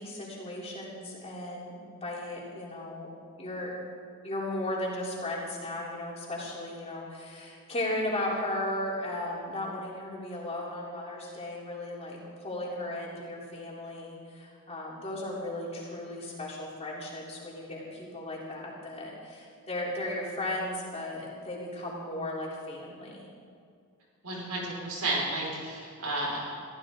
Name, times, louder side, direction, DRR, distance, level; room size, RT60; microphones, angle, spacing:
voice 1, 0.0-3.1 3.4-3.7 4.2-23.3, left 1 dB, 30° left, -5 dB, 3.7 m, -36 dB
voice 2, 24.2-26.5, right 2 dB, 85° right, -4 dB, 5.5 m, -32 dB
24.5 x 15.0 x 3.9 m, 2.3 s
head